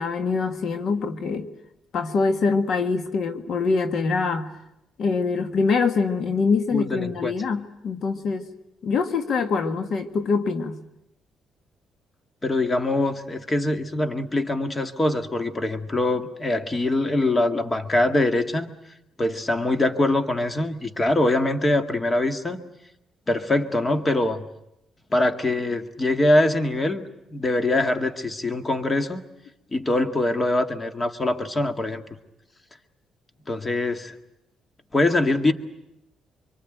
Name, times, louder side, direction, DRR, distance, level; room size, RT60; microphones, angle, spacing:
voice 1, 0.0-1.5 1.9-4.5 5.0-8.5 8.8-10.8, left 4 dB, 60° left, 8 dB, 1.5 m, -24 dB
voice 2, 6.7-7.3 12.4-18.7 19.2-22.7 23.3-24.4 25.1-27.0 27.3-29.2 29.7-32.0 33.5-34.1 34.9-35.5, left 2 dB, 25° left, 7 dB, 2.0 m, -23 dB
25.0 x 24.5 x 9.1 m, 0.85 s
cardioid pair, 90°, 0 cm